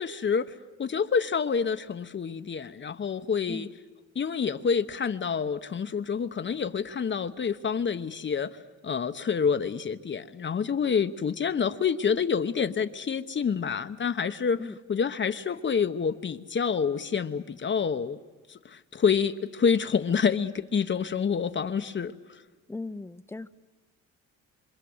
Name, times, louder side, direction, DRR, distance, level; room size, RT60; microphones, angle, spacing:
voice 1, 0.0-3.7 4.1-18.2 18.5-22.4, left 6 dB, 40° left, 1.0 m, -28 dB
voice 2, 22.7-23.5, left 3 dB, 10° left, 0.8 m, -37 dB
26.5 x 26.0 x 7.9 m
cardioid pair, 90°, 30 cm